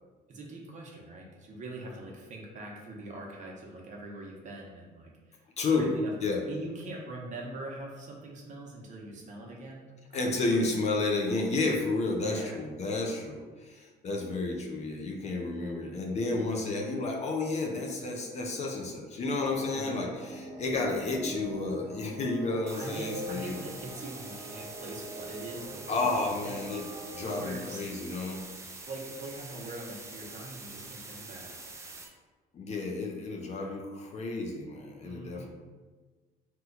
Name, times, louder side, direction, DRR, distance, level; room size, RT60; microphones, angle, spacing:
voice 1, 0.3-5.4 5.7-6.1 6.5-10.7 12.2-12.6 19.7-20.1 20.7-20.8 22.8-26.5 27.2-27.8 28.8-31.5 33.6-33.8 35.0-35.5, right 2 dB, 45° right, -1 dB, 0.8 m, -43 dB
voice 2, 5.6-5.9 6.2-6.4 10.1-23.6 25.9-28.4 32.5-35.5, left 3 dB, 40° left, 1 dB, 0.5 m, -31 dB
sound 1, 19.4-27.4, right 1 dB, 85° right, 0.6 m, -43 dB
sound 2, 22.7-32.1, right 3 dB, 15° right, 0.4 m, -45 dB
2.9 x 2.2 x 3.7 m, 1.4 s
cardioid pair, 110°, 17 cm